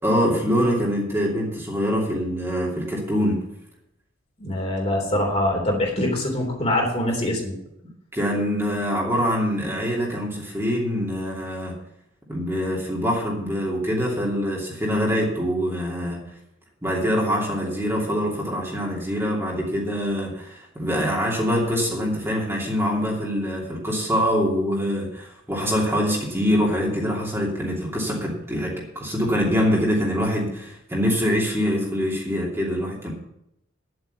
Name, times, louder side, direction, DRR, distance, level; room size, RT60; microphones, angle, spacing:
voice 1, 0.0-3.4 8.1-11.7 12.3-16.2 16.8-33.1, equal, 15° right, -3 dB, 2.8 m, -24 dB
voice 2, 4.4-7.6, left 1 dB, 35° left, -1 dB, 3.5 m, -24 dB
10.5 x 7.9 x 6.9 m, 0.79 s
head